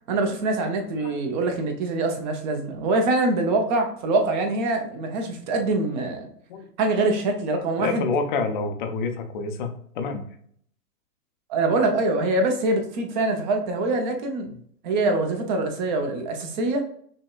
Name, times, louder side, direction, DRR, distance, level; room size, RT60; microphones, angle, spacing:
voice 1, 0.1-6.3 6.8-8.1 11.5-14.5 14.8-16.8, right 2 dB, 30° right, 4 dB, 0.7 m, -24 dB
voice 2, 7.8-10.2 14.5-14.6, left 4 dB, 35° left, 6 dB, 0.5 m, -28 dB
6.2 x 2.2 x 2.3 m, 0.63 s
hypercardioid pair, 125°, 47 cm